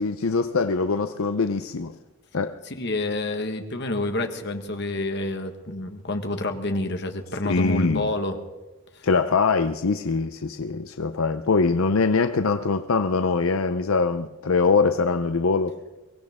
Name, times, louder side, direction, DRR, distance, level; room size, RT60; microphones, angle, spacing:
voice 1, 0.0-1.9 2.3-2.6 7.4-8.1 9.0-15.8, left 4 dB, 80° left, 0.6 m, -23 dB
voice 2, 2.6-8.4 8.9-9.0, left 2 dB, 55° left, 1.5 m, -28 dB
23.5 x 17.0 x 3.6 m
head